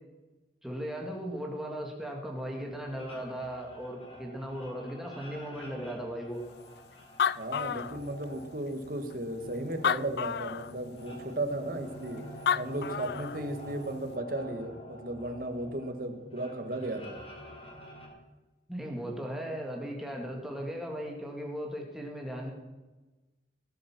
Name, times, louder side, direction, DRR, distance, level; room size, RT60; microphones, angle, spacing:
voice 1, 0.6-6.4 18.7-22.5, equal, ahead, 0 dB, 2.0 m, -37 dB
sound 1, 2.6-18.1, equal, 35° left, 3.9 m, -48 dB
Animal, 6.8-6.9 7.0-8.4 9.1-9.2 9.7-10.7 12.2-12.3 12.5-13.4, left 8 dB, 60° left, 0.3 m, -30 dB
voice 2, 7.3-12.2 12.5-17.2, right 1 dB, 50° right, 6 dB, 1.6 m, -35 dB
19.0 x 8.0 x 6.0 m, 1.1 s
head